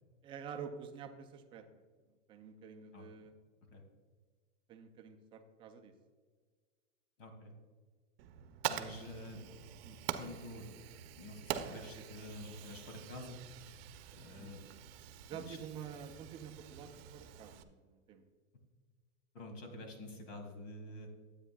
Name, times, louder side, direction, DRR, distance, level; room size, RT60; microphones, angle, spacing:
voice 1, 0.2-1.8 2.3-3.3 4.7-5.9 8.9-9.0 9.8-10.0 12.0-12.1 14.3-14.5 15.3-18.2, right 7 dB, 15° right, 6 dB, 0.3 m, -48 dB
voice 2, 7.2-7.5 8.7-9.4 10.2-10.7 11.2-13.4 14.1-14.6 15.3-15.6 19.3-21.1, left 1 dB, 80° left, 4 dB, 2.3 m, -48 dB
Fire, 8.2-17.6, right 11 dB, 50° right, 0.7 m, -45 dB
12.5 x 8.1 x 2.2 m, 1.5 s
supercardioid pair, 140°, 37 cm